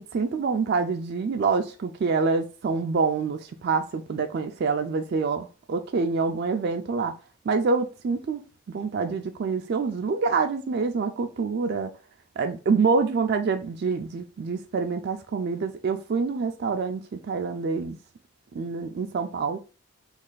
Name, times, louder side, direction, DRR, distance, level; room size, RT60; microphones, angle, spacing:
voice 1, 0.0-7.1 7.5-8.4 8.7-11.9 12.4-18.0 18.5-19.6, right 4 dB, 50° right, 0.3 m, -26 dB
3.2 x 2.4 x 3.8 m
head